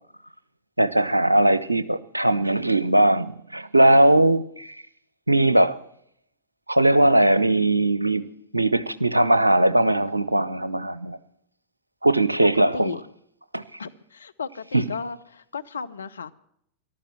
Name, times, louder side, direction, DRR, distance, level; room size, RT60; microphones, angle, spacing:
voice 1, 0.8-4.8 5.3-5.8 6.7-8.2 8.5-11.2 12.0-12.9 13.5-13.6 14.7-14.8, right 1 dB, 85° right, 0.6 m, -19 dB
voice 2, 12.4-13.0 13.8-16.3, left 5 dB, 70° left, 0.7 m, -34 dB
14.0 x 12.0 x 7.6 m
figure-of-eight pair, 90°, 0 cm